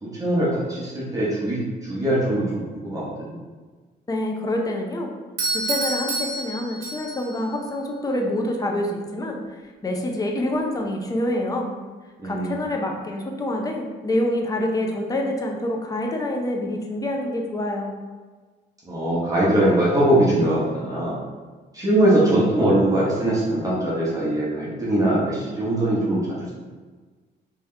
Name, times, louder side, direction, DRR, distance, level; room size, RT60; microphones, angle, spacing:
voice 1, 0.0-3.4 12.2-12.5 18.8-21.2 21.7-26.5, right 1 dB, 20° right, -8 dB, 1.1 m, -21 dB
voice 2, 4.1-5.1 5.5-9.4 9.8-11.8 12.2-17.9, left 1 dB, 20° left, 1 dB, 0.6 m, -26 dB
Doorbell, 5.4-7.4, right 2 dB, 85° right, 0.9 m, -28 dB
3.4 x 2.9 x 3.3 m, 1.4 s
cardioid pair, 90°, 20 cm